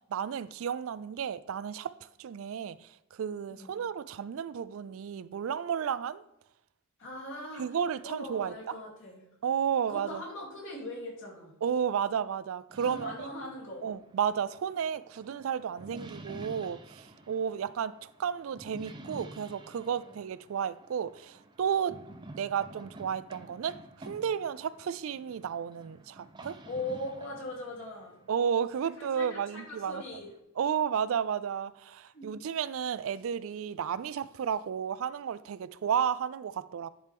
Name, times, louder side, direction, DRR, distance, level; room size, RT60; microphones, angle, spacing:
voice 1, 0.1-1.9 2.2-6.2 7.6-8.8 9.4-10.2 11.6-13.3 13.8-22.0 22.3-26.6 28.3-30.0 30.6-36.9, right 8 dB, 65° right, 0.3 m, -32 dB
voice 2, 7.0-7.8 8.0-9.3 9.9-11.5 12.8-13.9 19.7-20.1 26.7-28.2 28.9-30.3 32.1-32.3, left 1 dB, 60° left, 2.9 m, -40 dB
sound 1, 12.7-30.4, right 1 dB, 20° right, 0.6 m, -50 dB
10.5 x 4.4 x 3.4 m
head